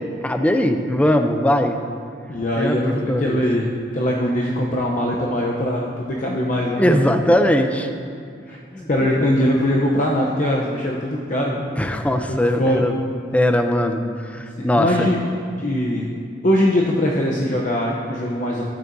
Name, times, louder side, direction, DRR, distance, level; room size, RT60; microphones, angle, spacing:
voice 1, 0.2-1.8 2.6-3.4 6.8-7.9 8.7-9.1 11.8-13.0 13.3-14.0 14.3-14.9, left 1 dB, 10° left, 6 dB, 0.5 m, -20 dB
voice 2, 2.3-7.0 8.5-8.6 8.9-11.7 12.3-12.8 14.6-15.2 15.6-16.1 16.4-18.6, left 1 dB, 45° left, -3 dB, 0.7 m, -21 dB
12.0 x 9.4 x 2.7 m, 2.2 s
head